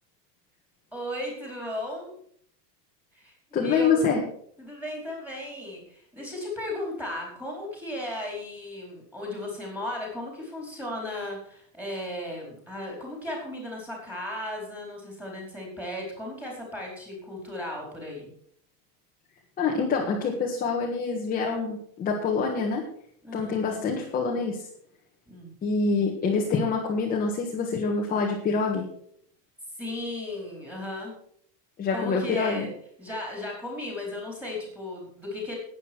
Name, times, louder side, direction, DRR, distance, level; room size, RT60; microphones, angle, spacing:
voice 1, 0.9-2.1 3.1-4.1 4.6-18.3 23.2-24.0 25.3-25.5 29.8-31.1 31.9-32.7 33.0-35.6, left 1 dB, 5° right, -1 dB, 4.6 m, -35 dB
voice 2, 3.5-4.2 19.6-22.8 23.3-24.7 25.6-28.8 31.8-32.7, left 4 dB, 15° left, -1 dB, 1.6 m, -26 dB
12.5 x 9.4 x 6.3 m, 0.63 s
supercardioid pair, 170°, 50 cm